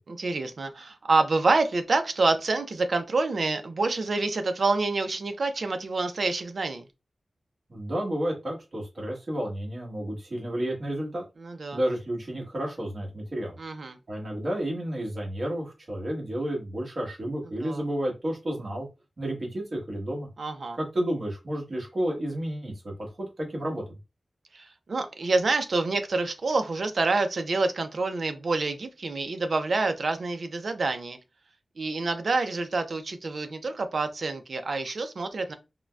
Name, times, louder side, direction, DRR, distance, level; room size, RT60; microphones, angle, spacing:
voice 1, 0.1-6.8 11.4-11.8 13.6-14.0 17.6-17.8 20.4-20.8 24.5-31.2 31.8-35.5, right 3 dB, 60° right, 0.4 m, -27 dB
voice 2, 7.7-11.2 11.7-13.6 14.1-18.9 19.2-20.3 20.8-23.8, right 1 dB, 45° right, 1.2 m, -31 dB
3.7 x 2.1 x 2.2 m
wide cardioid pair, 105°, 0 cm